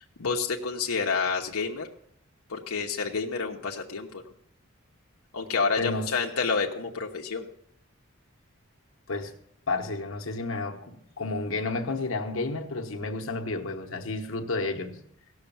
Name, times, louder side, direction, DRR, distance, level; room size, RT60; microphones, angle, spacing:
voice 1, 0.0-1.9 2.5-4.3 5.3-7.5, left 4 dB, 90° left, 1.0 m, -29 dB
voice 2, 5.8-6.1 9.1-9.3 9.7-15.0, left 3 dB, 65° left, 1.2 m, -31 dB
17.0 x 6.4 x 7.1 m
head